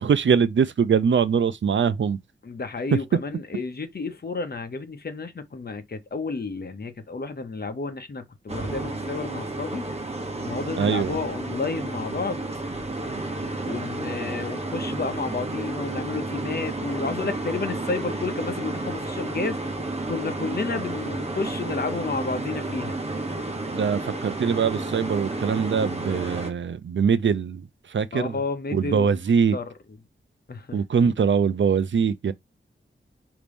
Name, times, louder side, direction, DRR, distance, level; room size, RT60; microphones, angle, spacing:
voice 1, 0.0-2.2 2.9-3.0 10.8-11.2 23.7-28.4 28.7-29.6 30.7-32.3, right 6 dB, 70° right, 0.5 m, -22 dB
voice 2, 2.4-9.8 10.4-12.5 13.7-19.6 20.1-23.0 28.1-29.1 29.5-29.6 30.5-30.8, left 4 dB, 50° left, 0.9 m, -31 dB
sound 1, 8.5-26.5, right 2 dB, 30° right, 1.2 m, -31 dB
5.1 x 2.9 x 3.5 m
wide cardioid pair, 105°, 20 cm